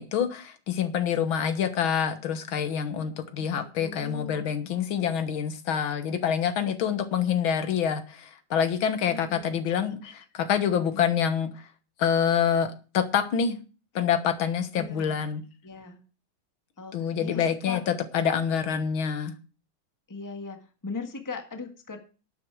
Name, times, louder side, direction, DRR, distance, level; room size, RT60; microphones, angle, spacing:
voice 1, 0.0-11.5 12.0-13.6 14.0-15.4 16.9-17.8 18.1-19.3, left 8 dB, 75° left, 9 dB, 2.1 m, -26 dB
voice 2, 3.4-4.5 9.1-9.9 14.7-15.2 15.6-16.0 16.8-17.8 20.1-22.0, left 4 dB, 10° left, 5 dB, 1.5 m, -39 dB
11.5 x 9.6 x 4.7 m, 0.35 s
omnidirectional pair, 2.2 m